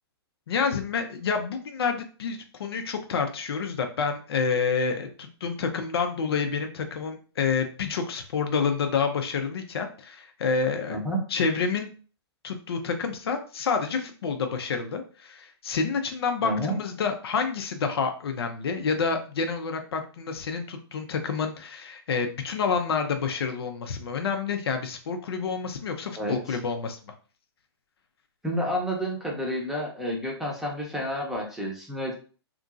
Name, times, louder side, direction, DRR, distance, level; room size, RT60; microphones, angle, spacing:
voice 1, 0.5-11.0 11.3-11.9 12.4-27.0, left 5 dB, 65° left, 5 dB, 0.5 m, -28 dB
voice 2, 16.4-16.7 26.2-26.6 28.4-32.1, equal, 5° right, -2 dB, 0.7 m, -30 dB
2.8 x 2.6 x 2.4 m, 0.39 s
hypercardioid pair, 125°, 14 cm